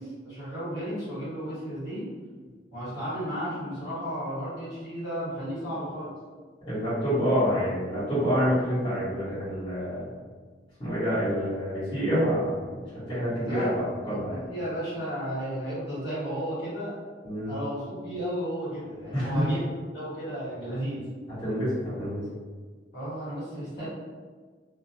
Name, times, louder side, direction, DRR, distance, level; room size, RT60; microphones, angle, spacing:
voice 1, 0.0-2.0 2.7-6.1 13.4-13.7 14.1-17.0 17.5-21.0 22.9-23.9, equal, 60° left, -12 dB, 1.5 m, -33 dB
voice 2, 6.7-10.1 10.8-14.5 17.2-17.5 19.1-19.4 21.4-22.2, equal, 30° left, -14 dB, 1.3 m, -27 dB
2.5 x 2.2 x 2.6 m, 1.5 s
head